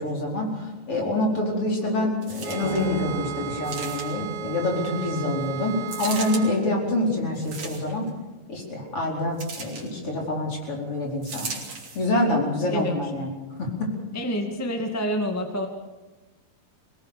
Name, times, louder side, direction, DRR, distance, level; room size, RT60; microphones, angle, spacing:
voice 1, 0.0-8.1 8.5-11.5 12.0-13.3 13.6-13.9, left 1 dB, 40° left, 0 dB, 5.4 m, -26 dB
sound 1, 2.2-2.9 3.6-4.3 5.9-6.4 7.4-8.1 9.4-9.9 11.2-12.1 12.8-12.9, right 4 dB, 40° right, 3.9 m, -36 dB
sound 2, 2.4-6.6, right 11 dB, 80° right, 3.1 m, -35 dB
sound 3, 2.6-5.0, left 3 dB, 80° left, 4.8 m, -37 dB
voice 2, 12.6-13.3 14.1-15.7, equal, 10° left, 4 dB, 1.1 m, -28 dB
23.5 x 20.0 x 6.8 m, 1.2 s
omnidirectional pair, 4.1 m